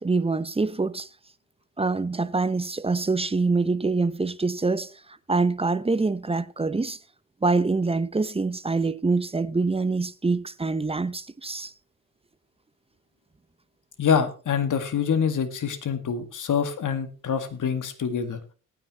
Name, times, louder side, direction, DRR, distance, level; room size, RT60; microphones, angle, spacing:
voice 1, 0.0-1.1 1.8-4.9 5.3-7.0 7.4-11.7, right 3 dB, 15° right, 0.8 m, -25 dB
voice 2, 14.0-18.4, left 7 dB, 45° left, 1.9 m, -25 dB
20.5 x 9.3 x 3.0 m
hypercardioid pair, 45°, 42 cm